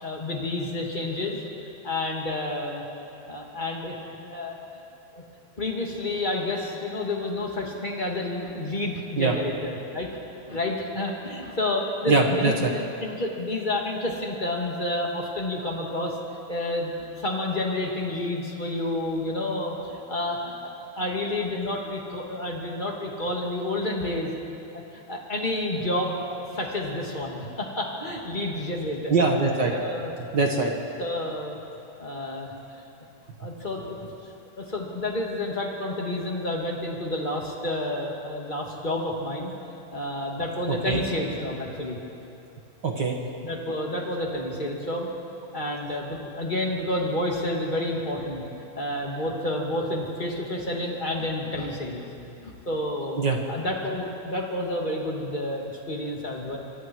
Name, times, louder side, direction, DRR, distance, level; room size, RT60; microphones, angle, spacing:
voice 1, 0.0-1.4 1.8-2.8 3.3-4.6 5.1-5.2 5.6-10.1 10.5-16.2 16.5-24.3 24.7-24.8 25.1-29.1 29.6-30.1 31.0-31.6 32.0-32.5 33.4-34.0 34.6-39.5 39.9-42.0 43.4-45.1 45.5-48.4 48.7-52.0 52.4-53.2 53.5-56.6, left 1 dB, 15° left, -1 dB, 1.9 m, -30 dB
voice 2, 12.1-12.7 29.1-29.7 30.3-30.7 40.7-41.0 42.8-43.2 53.2-53.4, right 3 dB, 60° right, 1 dB, 1.2 m, -22 dB
26.5 x 25.0 x 4.8 m, 2.7 s
omnidirectional pair, 4.5 m